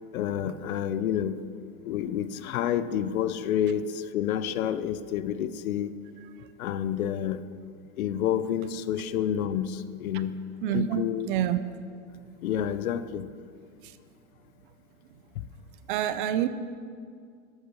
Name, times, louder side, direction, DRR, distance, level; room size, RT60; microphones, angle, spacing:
voice 1, 0.1-1.4 1.8-5.9 6.6-7.4 8.0-10.3 10.7-11.3 12.4-13.3, left 9 dB, 75° left, 14 dB, 0.7 m, -29 dB
voice 2, 10.6-11.6 13.8-14.0 15.9-16.5, right 11 dB, 40° right, 13 dB, 0.5 m, -27 dB
14.0 x 6.4 x 6.1 m, 2.2 s
supercardioid pair, 150°, 42 cm